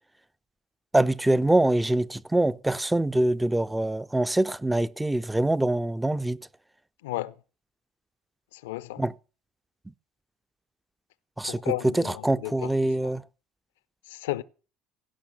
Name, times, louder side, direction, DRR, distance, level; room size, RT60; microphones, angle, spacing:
voice 1, 0.9-6.4 9.0-9.1 11.4-13.2, right 1 dB, 10° right, 0.7 m, -24 dB
voice 2, 7.0-7.3 8.5-9.0 11.4-12.7 13.0-13.2 14.1-14.4, left 17 dB, 85° left, 0.7 m, -33 dB
16.5 x 5.9 x 8.7 m
hypercardioid pair, 70°, 0 cm